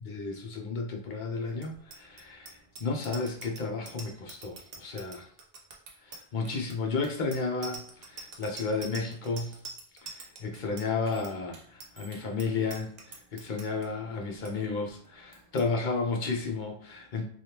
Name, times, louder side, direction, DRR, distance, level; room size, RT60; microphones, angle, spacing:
voice 1, 0.0-5.3 6.1-9.5 10.2-17.3, left 4 dB, 55° left, 2 dB, 0.7 m, -33 dB
Bicycle bell, 1.6-13.9 14.2-14.5 14.8-15.1 15.3-15.7, right 3 dB, 70° right, 0.9 m, -46 dB
3.3 x 2.4 x 2.8 m, 0.63 s
omnidirectional pair, 1.0 m